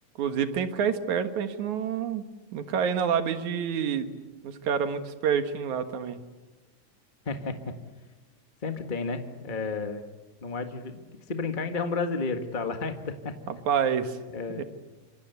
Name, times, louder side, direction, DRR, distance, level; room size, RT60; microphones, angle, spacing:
voice 1, 0.2-2.2 2.5-4.1 4.4-6.2 13.5-14.2 14.6-14.7, right 7 dB, 75° right, 8 dB, 2.9 m, -28 dB
voice 2, 7.2-7.6 8.6-10.0 10.4-13.3 14.3-14.6, left 4 dB, 25° left, 6 dB, 1.1 m, -32 dB
26.5 x 26.0 x 8.3 m, 1.2 s
omnidirectional pair, 3.4 m